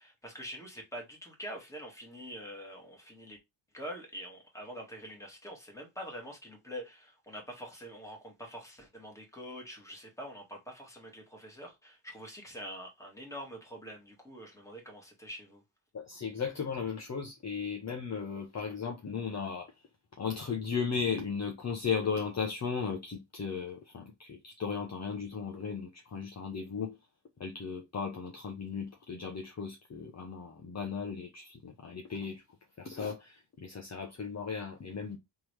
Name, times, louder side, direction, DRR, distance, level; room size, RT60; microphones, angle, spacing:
voice 1, 0.0-3.4 3.7-15.6, equal, 5° left, 1.8 m, -45 dB
voice 2, 15.9-19.7 20.2-27.0 27.4-32.4 32.8-35.2, left 6 dB, 35° left, 0.8 m, -36 dB
3.7 x 3.1 x 3.1 m
wide cardioid pair, 115°, 46 cm